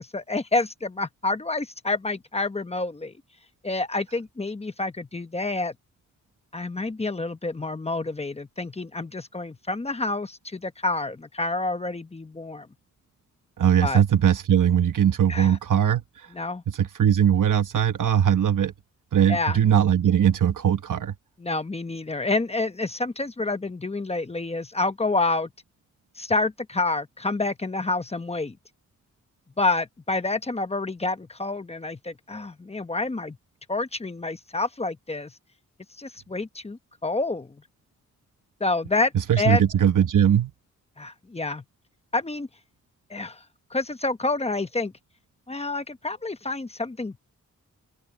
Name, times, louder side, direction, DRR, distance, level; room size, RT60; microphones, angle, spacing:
voice 1, 0.0-3.1 3.6-5.7 6.5-12.7 13.8-14.0 15.3-15.6 16.3-16.6 19.3-19.6 21.4-25.5 26.2-28.6 29.6-33.4 33.7-35.3 36.0-37.6 38.6-39.6 41.0-41.6 42.1-42.5 43.1-43.4 43.7-44.9 45.5-47.2, left 3 dB, 20° left, 0.9 m, -28 dB
voice 2, 13.6-16.0 16.7-18.7 19.1-21.1 39.3-40.5, right 9 dB, 80° right, 1.4 m, -20 dB
wide cardioid pair, 120°, 31 cm